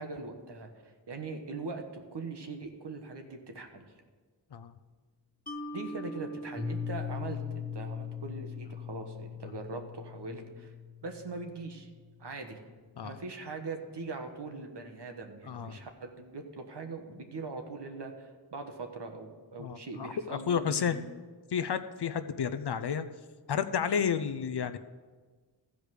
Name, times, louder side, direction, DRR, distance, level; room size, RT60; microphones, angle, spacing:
voice 1, 0.0-3.8 5.7-10.7 11.0-11.9 12.2-12.6 13.0-20.9, right 3 dB, 60° right, 5 dB, 1.4 m, -41 dB
Mallet percussion, 5.5-8.7, right 1 dB, 20° left, 0.9 m, -43 dB
Piano, 6.5-12.2, left 8 dB, 35° right, 2.7 m, -40 dB
voice 2, 15.5-15.8 19.6-21.0 21.5-23.0 23.5-24.8, left 7 dB, 60° left, 12 dB, 0.6 m, -31 dB
14.0 x 5.1 x 6.4 m, 1.4 s
wide cardioid pair, 60°, 45 cm